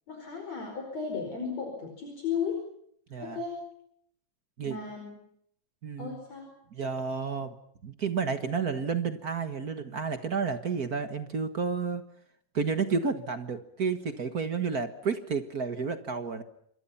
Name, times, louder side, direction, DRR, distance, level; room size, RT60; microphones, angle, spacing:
voice 1, 0.1-2.6 3.2-3.6 4.7-5.1 6.0-6.5, left 6 dB, 50° left, 3 dB, 6.0 m, -34 dB
voice 2, 5.8-6.2 6.7-7.5 7.8-12.0 12.5-16.4, right 5 dB, 45° right, 9 dB, 1.3 m, -31 dB
27.5 x 25.0 x 5.8 m, 0.70 s
omnidirectional pair, 3.8 m